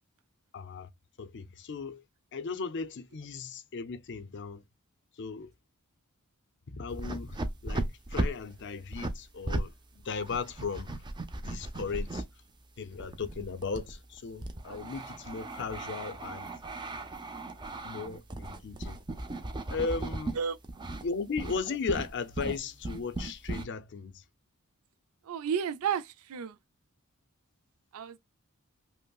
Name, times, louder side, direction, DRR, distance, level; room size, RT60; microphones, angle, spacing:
voice 1, 0.5-0.9 1.2-2.0 2.3-4.6 5.2-5.5 6.7-11.0 11.4-12.2 12.8-16.5 17.8-19.0 19.7-20.4 21.0-24.2, left 5 dB, 55° left, 0.5 m, -36 dB
sound 1, 6.9-9.7 10.0-12.2 12.9-20.4 20.6-21.1 21.4-21.6 21.9-23.6, right 2 dB, 20° right, 0.5 m, -36 dB
voice 2, 25.2-26.6 27.9-28.2, right 7 dB, 75° right, 0.4 m, -32 dB
5.3 x 2.0 x 2.3 m
head